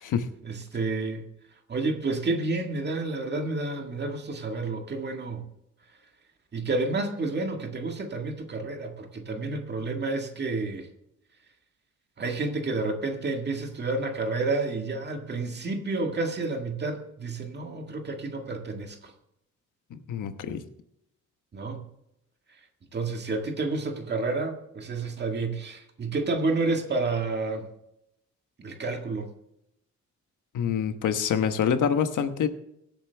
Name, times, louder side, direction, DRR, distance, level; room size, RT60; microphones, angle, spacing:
voice 1, 0.4-1.3 1.7-5.5 6.5-10.9 12.2-19.1 21.5-21.8 22.9-27.7 28.6-29.3, right 3 dB, 35° right, 4 dB, 1.8 m, -30 dB
voice 2, 19.9-20.6 30.5-32.5, left 7 dB, 90° left, 9 dB, 1.1 m, -26 dB
23.5 x 8.4 x 3.4 m, 0.80 s
wide cardioid pair, 180°, 30 cm